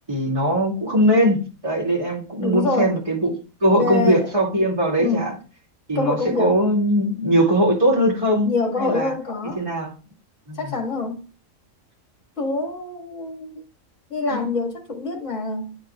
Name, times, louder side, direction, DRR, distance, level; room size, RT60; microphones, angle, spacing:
voice 1, 0.1-5.4 5.9-9.1 9.5-9.9 10.5-10.7 14.3-14.4, equal, 25° right, 2.5 m, -20 dB
voice 2, 2.4-2.9 3.7-4.3 5.0-5.3 5.9-6.5 8.4-9.6 10.6-11.2 12.4-13.6 14.1-15.8, left 3 dB, 60° left, 2.3 m, -25 dB
10.5 x 5.3 x 2.4 m
omnidirectional pair, 1.4 m